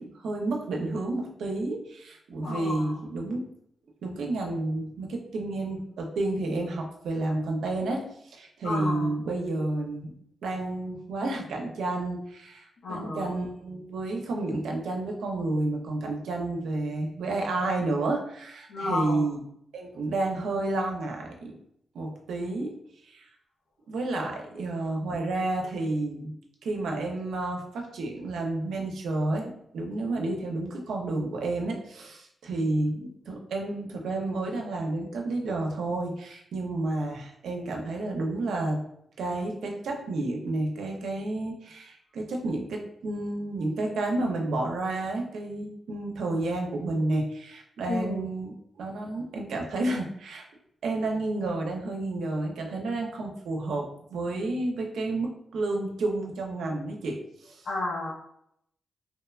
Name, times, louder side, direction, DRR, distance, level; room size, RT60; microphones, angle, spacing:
voice 1, 0.0-3.5 4.0-10.1 10.4-19.4 19.7-21.5 21.9-22.8 23.0-23.3 23.9-26.3 26.6-38.8 39.2-50.4 50.8-57.2 57.4-57.6, right 2 dB, 90° right, 2 dB, 0.5 m, -30 dB
voice 2, 2.4-3.0 8.6-9.2 12.8-13.4 18.7-19.3 47.9-48.3 57.6-58.1, left 2 dB, 80° left, -5 dB, 0.5 m, -31 dB
2.9 x 2.1 x 2.3 m, 0.74 s
cardioid pair, 75°, 0 cm